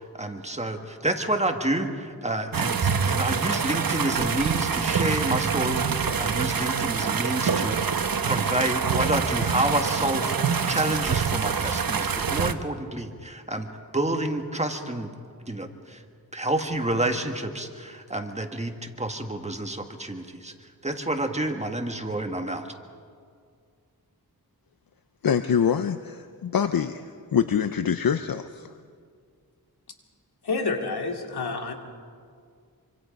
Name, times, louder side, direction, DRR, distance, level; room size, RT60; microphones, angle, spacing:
voice 1, 0.0-8.0 8.3-13.7 13.9-15.1 15.5-16.0 16.3-20.5 20.8-22.7, right 1 dB, 15° right, 5 dB, 1.7 m, -29 dB
water pump output stream clingy, 2.5-12.5, right 6 dB, 65° right, 1.1 m, -25 dB
voice 2, 25.2-28.7, left 7 dB, 65° left, 10 dB, 0.7 m, -25 dB
voice 3, 30.4-31.7, left 3 dB, 85° left, 3 dB, 2.6 m, -28 dB
26.0 x 25.0 x 5.3 m, 2.2 s
wide cardioid pair, 100°, 38 cm